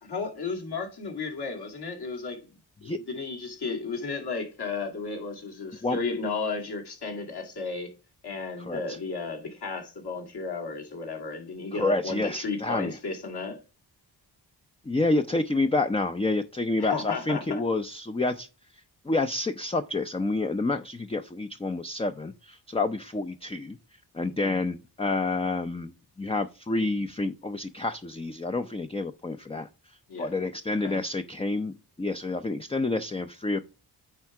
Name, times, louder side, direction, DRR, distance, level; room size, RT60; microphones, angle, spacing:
voice 1, 0.0-2.5 2.8-7.9 8.2-13.6 16.8-17.6 24.4-24.6 30.1-30.3 30.8-31.0, left 4 dB, 60° left, 2.1 m, -34 dB
voice 2, 8.6-9.0 11.7-13.0 14.9-18.5 19.0-23.8 24.1-29.7 30.2-31.7 32.0-33.6, left 2 dB, 15° left, 0.5 m, -28 dB
9.0 x 3.5 x 4.7 m
cardioid pair, 45°, 44 cm